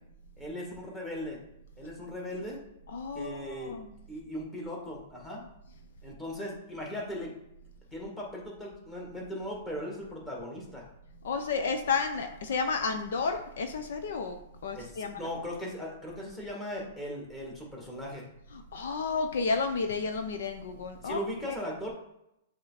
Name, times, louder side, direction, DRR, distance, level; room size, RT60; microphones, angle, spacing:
voice 1, 0.4-1.4 1.8-2.6 3.1-3.7 4.1-5.4 6.0-7.3 7.9-10.9 14.7-18.3 21.0-21.9, equal, 10° left, -3 dB, 1.9 m, -38 dB
voice 2, 2.9-3.9 11.2-15.1 18.7-21.2, left 4 dB, 75° left, 7 dB, 0.7 m, -31 dB
7.4 x 3.1 x 4.1 m, 0.84 s
hypercardioid pair, 145°, 0 cm